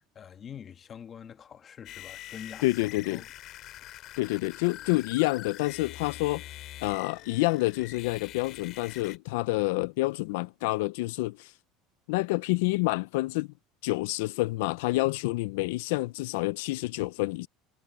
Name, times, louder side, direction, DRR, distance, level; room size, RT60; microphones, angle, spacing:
voice 1, 0.0-3.3 3.6-3.7, left 8 dB, 25° left, 1.5 m, -45 dB
sound 1, 1.8-9.2, left 14 dB, 45° left, 6.7 m, -45 dB
voice 2, 2.6-3.2 4.2-6.4 6.8-11.5 12.1-13.5 13.8-17.5, left 21 dB, 85° left, 0.4 m, -28 dB
cardioid pair, 155°, 0 cm